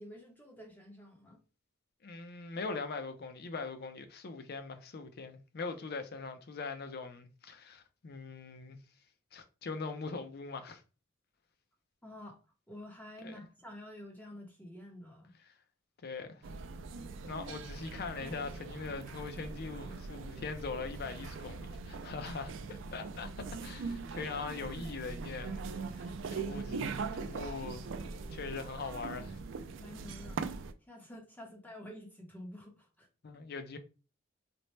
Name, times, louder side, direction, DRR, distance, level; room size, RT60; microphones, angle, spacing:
voice 1, 0.0-1.4 12.0-12.4 12.7-15.3 29.8-30.4 30.9-33.1, left 1 dB, 10° left, 0.8 m, -49 dB
voice 2, 2.0-8.8 9.3-10.8 13.2-13.4 16.0-16.4 17.2-23.3 23.6-27.8 28.3-29.4 33.2-33.8, left 4 dB, 55° left, 0.5 m, -41 dB
sound 1, 16.4-30.7, right 4 dB, 70° right, 0.4 m, -41 dB
4.2 x 2.0 x 3.1 m
head